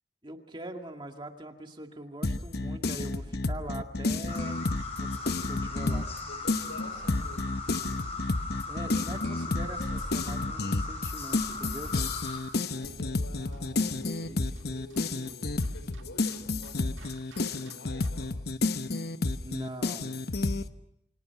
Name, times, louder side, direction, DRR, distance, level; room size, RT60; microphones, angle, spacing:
voice 1, 0.2-4.6 5.0-6.1 8.5-11.9 19.4-20.2, right 1 dB, 25° right, 4 dB, 2.0 m, -42 dB
sound 1, 2.2-6.2 6.5-20.6, left 3 dB, 55° left, 0.9 m, -31 dB
sound 2, 4.3-12.4, left 3 dB, 35° left, 5.8 m, -38 dB
voice 2, 6.3-7.6 12.6-16.9 17.2-18.4, left 2 dB, 90° left, 9 dB, 4.7 m, -48 dB
sound 3, 12.8-18.3, right 1 dB, 85° right, 1.9 m, -51 dB
28.5 x 23.5 x 5.9 m, 0.75 s
head